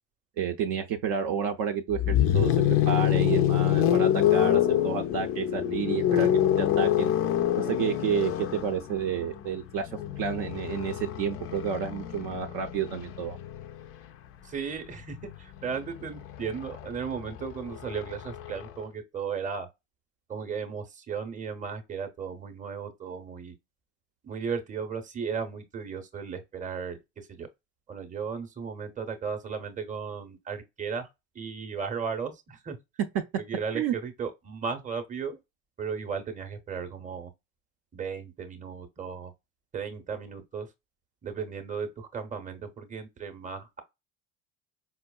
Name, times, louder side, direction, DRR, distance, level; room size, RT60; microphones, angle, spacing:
voice 1, 0.4-2.5 2.9-7.1 7.6-9.9 10.2-13.4 33.7-33.9, right 7 dB, 55° right, 0.6 m, -30 dB
sound 1, 1.9-13.9 15.1-18.7, left 11 dB, 35° left, 0.4 m, -26 dB
voice 2, 14.4-19.7 20.3-23.6 24.2-27.5 27.9-31.1 31.3-32.8 33.4-35.4 35.8-37.3 37.9-39.3 39.7-40.7 41.2-43.8, right 6 dB, 20° right, 0.7 m, -35 dB
4.6 x 2.0 x 2.2 m
hypercardioid pair, 75°, 43 cm